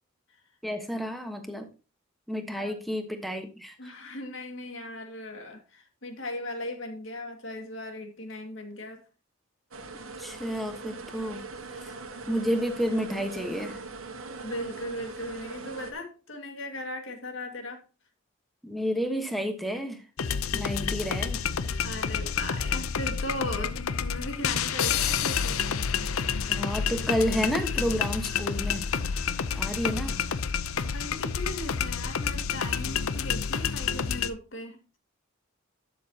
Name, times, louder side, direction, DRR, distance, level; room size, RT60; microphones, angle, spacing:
voice 1, 0.6-1.7 2.3-3.7 10.2-11.4 11.8-11.9 12.3-13.8 18.6-20.0 20.5-21.4 26.5-28.9 29.6-30.2, equal, ahead, 5 dB, 1.2 m, -30 dB
voice 2, 3.8-9.0 14.4-17.8 21.8-25.6 30.9-34.8, left 1 dB, 65° left, 5 dB, 2.0 m, -38 dB
sound 1, 9.7-15.9, right 3 dB, 80° right, 1.5 m, -41 dB
sound 2, 20.2-34.3, left 6 dB, 80° left, 0.6 m, -29 dB
12.0 x 6.9 x 2.9 m, 0.31 s
head